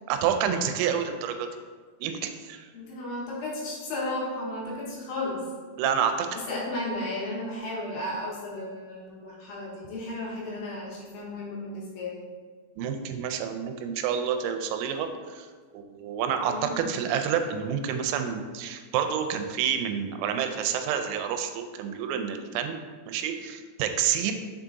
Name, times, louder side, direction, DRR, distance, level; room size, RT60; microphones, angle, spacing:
voice 1, 0.1-1.5 2.0-2.7 5.8-6.3 12.8-15.5 15.7-22.8 23.1-24.3, right 8 dB, 90° right, 6 dB, 3.3 m, -28 dB
voice 2, 2.7-5.5 6.3-12.2 16.4-16.8, left 2 dB, 75° left, -5 dB, 3.3 m, -34 dB
7.3 x 3.6 x 3.9 m, 1.5 s
omnidirectional pair, 6.0 m